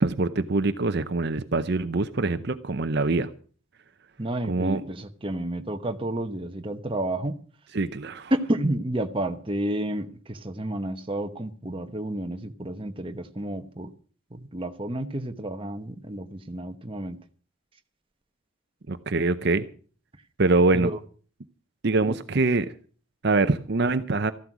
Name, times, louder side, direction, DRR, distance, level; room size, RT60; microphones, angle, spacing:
voice 1, 0.0-3.3 4.5-4.8 7.7-8.3 18.9-19.6 20.4-20.9 21.8-22.7 23.2-24.3, right 3 dB, 50° right, 0.7 m, -24 dB
voice 2, 4.2-7.4 8.3-13.9 14.3-17.2 20.7-21.0 22.0-22.2, right 1 dB, 25° right, 1.0 m, -30 dB
14.5 x 12.0 x 6.1 m
head